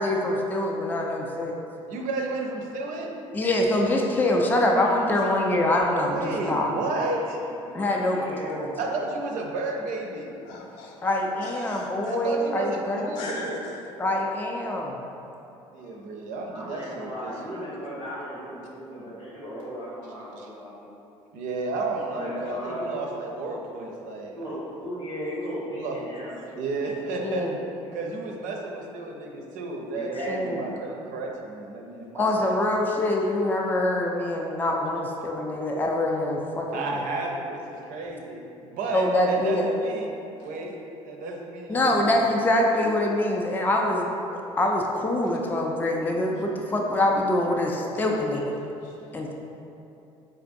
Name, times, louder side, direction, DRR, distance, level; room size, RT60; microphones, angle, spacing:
voice 1, 0.0-1.6 3.3-6.7 7.7-8.7 11.0-13.1 14.0-15.0 27.2-27.5 30.3-30.6 32.1-37.0 38.9-39.7 41.7-48.5 49.1-49.3, left 1 dB, 10° left, 0 dB, 0.4 m, -25 dB
voice 2, 1.9-3.2 6.1-7.4 8.8-10.4 12.1-13.6 15.7-17.4 20.4-20.5 21.3-24.6 25.7-26.0 26.5-27.4 27.9-32.6 36.7-40.1 40.4-40.7 41.0-41.9 49.1-49.3, right 3 dB, 55° right, 0 dB, 0.5 m, -32 dB
voice 3, 7.1-8.6 16.4-20.9 22.1-22.9 24.3-26.4 29.9-30.7, equal, 85° left, -10 dB, 1.3 m, -36 dB
voice 4, 10.4-11.1 11.4-12.1 13.1-13.8 15.8-16.0 40.4-40.5 45.2-45.4 48.0-48.1 48.3-49.0, left 2 dB, 60° left, -2 dB, 0.6 m, -40 dB
4.4 x 2.5 x 2.5 m, 2.8 s
figure-of-eight pair, 55°, 16 cm